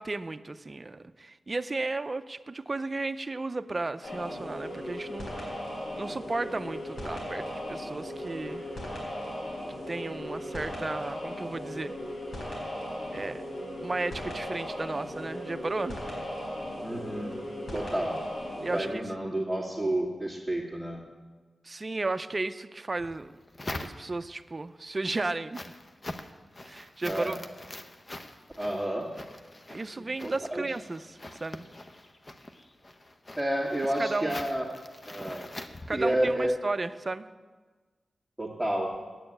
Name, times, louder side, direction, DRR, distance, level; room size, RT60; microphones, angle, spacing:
voice 1, 0.0-5.5 6.0-8.7 9.9-11.9 13.1-13.4 13.8-16.0 18.6-19.0 21.6-23.4 23.8-25.7 26.6-27.4 29.7-31.7 34.0-34.5 35.9-37.2, right 3 dB, 35° right, 11 dB, 0.5 m, -34 dB
sound 1, 4.0-18.9, equal, 75° left, 4.2 m, -37 dB
voice 2, 16.8-17.4 17.7-18.2 18.7-21.0 27.0-27.4 28.6-29.1 30.0-30.6 33.4-34.6 35.1-35.5 35.9-36.5 38.4-38.9, right 1 dB, 5° left, -5 dB, 2.1 m, -30 dB
sound 2, 23.0-24.4 24.9-36.5, left 1 dB, 35° left, 0.8 m, -44 dB
9.4 x 7.0 x 8.8 m, 1.3 s
cardioid pair, 60°, 0 cm